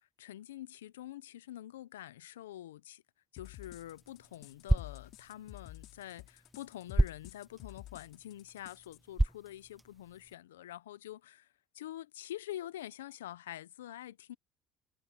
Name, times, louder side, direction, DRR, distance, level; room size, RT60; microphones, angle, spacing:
voice 1, 0.2-3.0 3.3-14.4, left 13 dB, 90° left, 0.5 m, -46 dB
sound 1, 3.4-9.0, left 16 dB, 65° left, 3.3 m, -50 dB
sound 2, 3.4-10.3, right 1 dB, 5° right, 0.9 m, -35 dB
hypercardioid pair, 65°, 0 cm